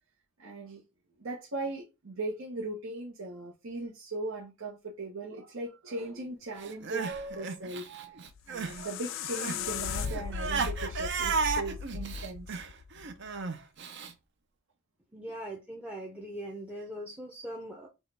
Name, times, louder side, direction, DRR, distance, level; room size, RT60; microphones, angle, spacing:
voice 1, 0.4-0.8 1.2-12.6 13.2-13.6, right 2 dB, 80° right, 1.0 m, -39 dB
Crying sobbing, 6.6-8.8 9.1-14.1, right 5 dB, 55° right, 0.6 m, -34 dB
sound 1, 8.3-13.4, left 7 dB, 65° left, 0.3 m, -37 dB
voice 2, 15.1-17.9, right 1 dB, 5° right, 0.6 m, -41 dB
6.2 x 2.3 x 3.3 m
head